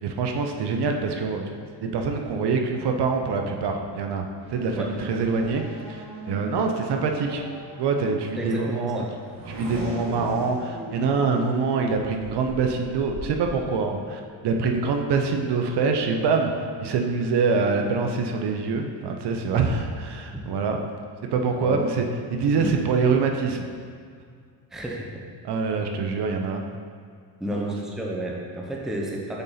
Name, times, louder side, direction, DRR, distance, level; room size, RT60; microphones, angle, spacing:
voice 1, 0.0-5.6 5.9-7.4 7.8-9.0 9.5-20.8 21.3-22.0 22.3-23.7 25.5-26.7, right 4 dB, 60° right, 3 dB, 0.7 m, -25 dB
Race car auto racing / Accelerating revving vroom, 4.4-13.5, right 1 dB, 40° right, 1.4 m, -39 dB
voice 2, 8.3-9.1 21.6-21.8 22.6-22.7 24.7-25.2 27.4-29.4, right 1 dB, ahead, -2 dB, 0.6 m, -31 dB
7.0 x 4.1 x 4.0 m, 2.1 s
cardioid pair, 150°, 45 cm